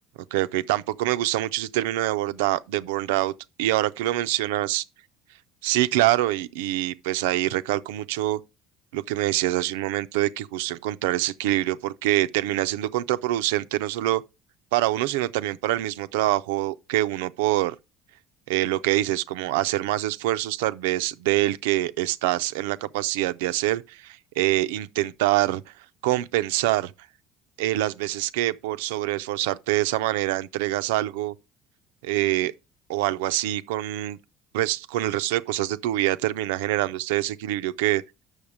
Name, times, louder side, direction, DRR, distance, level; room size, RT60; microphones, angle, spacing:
voice 1, 0.3-3.3 3.6-4.8 5.6-8.4 8.9-14.2 14.7-17.8 18.5-25.7 26.0-26.9 27.6-31.3 32.0-32.5 32.9-34.2 34.5-38.0, right 15 dB, 85° right, 0.4 m, -25 dB
7.2 x 6.4 x 4.9 m
supercardioid pair, 80°, 0 cm